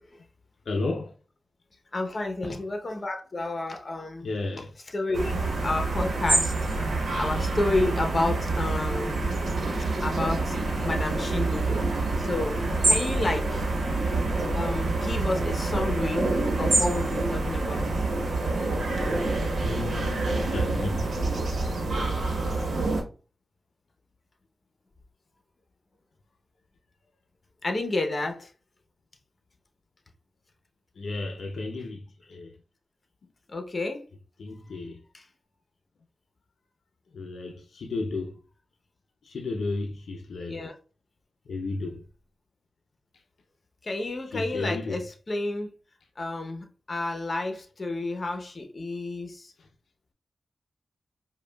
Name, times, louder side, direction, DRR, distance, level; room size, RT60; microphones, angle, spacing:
voice 1, 0.7-1.1 4.2-4.7 11.9-12.9 18.5-18.7 19.5-21.1 31.0-32.5 34.4-35.0 37.1-38.4 39.2-40.6 41.5-42.0 44.3-45.0, left 3 dB, 85° left, 0.5 m, -33 dB
voice 2, 1.9-4.3 4.9-6.5 7.2-9.4 9.8-10.6 10.8-11.8 12.2-12.6 12.9-13.7 14.6-16.3 16.6-17.9 27.6-28.5 33.5-34.0 35.1-35.2 40.5-40.7 43.8-45.7 46.2-49.5, left 2 dB, 45° left, 0.7 m, -30 dB
sound 1, 5.1-23.0, right 2 dB, 80° right, 1.0 m, -27 dB
5.0 x 2.3 x 2.2 m
cardioid pair, 75°, 0 cm